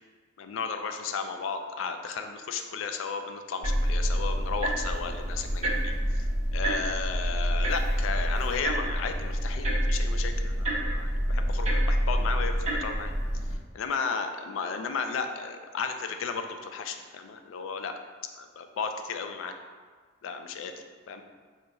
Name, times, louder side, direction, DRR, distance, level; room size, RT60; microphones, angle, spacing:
voice 1, 0.4-13.1 13.5-17.9 18.4-19.5 20.2-20.7 21.1-21.2, left 5 dB, 85° left, 7 dB, 0.3 m, -34 dB
sound 1, 3.6-13.5, equal, 35° right, 0.7 m, -27 dB
4.8 x 2.8 x 2.3 m, 1.5 s
head